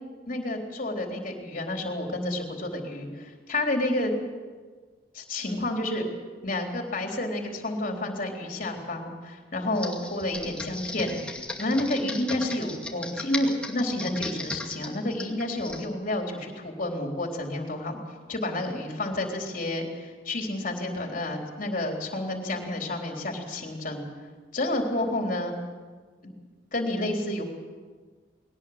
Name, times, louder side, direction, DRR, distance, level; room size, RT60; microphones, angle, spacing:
voice 1, 0.3-4.1 5.1-6.1 6.4-11.1 11.6-18.0 18.3-24.1 24.5-25.5 26.7-27.4, left 1 dB, 45° left, 2 dB, 3.9 m, -30 dB
Computer keyboard, 9.7-15.9, left 2 dB, 5° left, 2.4 m, -36 dB
21.0 x 18.5 x 8.1 m, 1.5 s
head